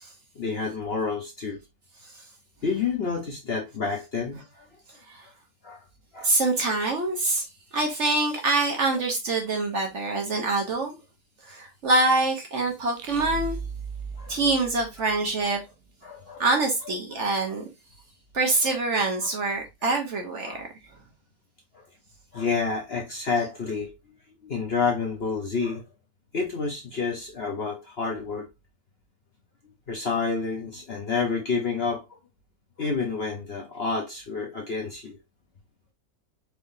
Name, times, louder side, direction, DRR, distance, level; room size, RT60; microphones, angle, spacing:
voice 1, 0.4-1.6 2.6-4.7 5.6-5.8 6.1-6.3 14.1-14.4 15.4-15.5 16.0-16.4 17.1-17.5 19.2-19.3 19.8-19.9 20.4-20.6 22.3-23.9 24.4-25.8 26.3-28.5 29.9-32.0 32.8-35.2, left 4 dB, 50° left, 0.8 m, -29 dB
voice 2, 6.2-7.4 7.7-10.9 11.5-13.6 14.3-15.6 16.4-17.6 18.3-20.7, right 2 dB, 50° right, 1.1 m, -25 dB
sound 1, 13.0-15.6, right 3 dB, 85° right, 1.3 m, -37 dB
4.6 x 3.5 x 2.6 m
omnidirectional pair, 1.8 m